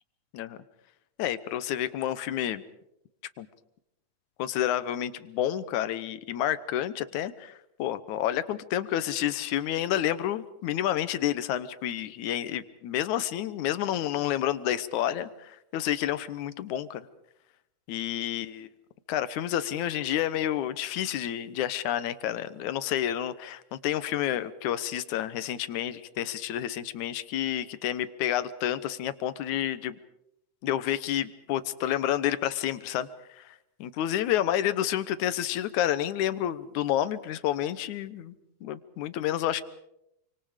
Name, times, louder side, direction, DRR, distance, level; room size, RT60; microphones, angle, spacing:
voice 1, 1.2-2.6 3.4-3.5 4.4-17.1 17.9-18.7 19.1-30.0 30.6-38.3 38.6-39.6, left 11 dB, 85° left, 14 dB, 2.4 m, -29 dB
28.0 x 25.0 x 5.0 m, 0.82 s
omnidirectional pair, 3.3 m